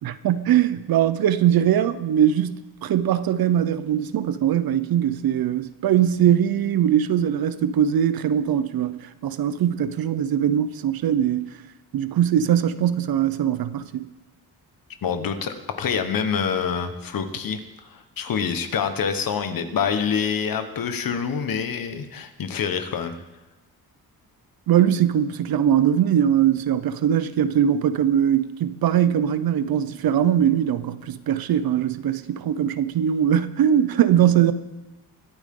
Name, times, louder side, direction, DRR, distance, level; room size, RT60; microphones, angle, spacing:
voice 1, 0.0-11.5 11.9-14.0 24.7-34.5, right 10 dB, 70° right, 0.8 m, -21 dB
voice 2, 15.0-23.2, left 6 dB, 65° left, 1.4 m, -26 dB
23.5 x 8.8 x 3.8 m
cardioid pair, 105°, 37 cm